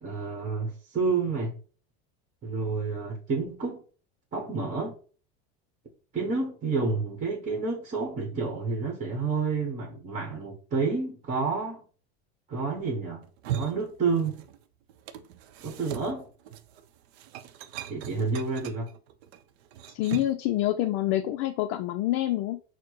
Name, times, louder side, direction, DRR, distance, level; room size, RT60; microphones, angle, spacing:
voice 1, 0.0-1.6 2.4-3.8 4.3-4.9 6.1-11.8 12.5-13.2 13.5-14.4 15.6-16.3 17.9-18.9, right 4 dB, 25° right, 1.1 m, -29 dB
sound 1, 13.2-14.6 14.9-20.5, right 11 dB, 85° right, 0.6 m, -39 dB
voice 2, 19.9-22.6, left 14 dB, 50° left, 0.4 m, -27 dB
4.4 x 2.1 x 4.6 m
supercardioid pair, 145°, 31 cm